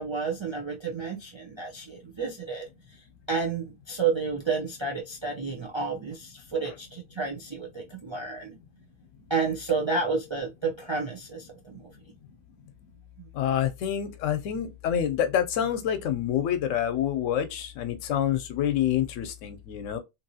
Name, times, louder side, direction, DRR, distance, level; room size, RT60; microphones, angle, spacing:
voice 1, 0.0-2.7 3.3-8.6 9.3-11.8 13.2-13.3, right 4 dB, 50° right, 0.3 m, -31 dB
voice 2, 13.3-20.0, left 10 dB, 90° left, 0.9 m, -27 dB
2.9 x 2.6 x 2.7 m
omnidirectional pair, 1.3 m